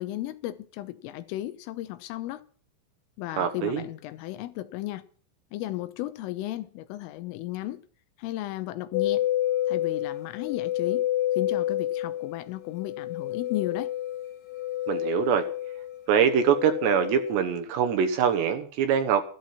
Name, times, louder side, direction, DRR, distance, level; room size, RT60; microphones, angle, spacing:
voice 1, 0.0-2.4 3.2-5.0 5.5-7.8 8.2-9.3 9.7-11.0 11.4-13.9, left 15 dB, 90° left, 3.5 m, -34 dB
voice 2, 3.4-3.8 14.9-15.5 16.1-19.2, right 8 dB, 70° right, 2.9 m, -24 dB
sound 1, 8.9-17.4, left 13 dB, 70° left, 4.5 m, -29 dB
14.0 x 13.0 x 5.8 m
omnidirectional pair, 5.8 m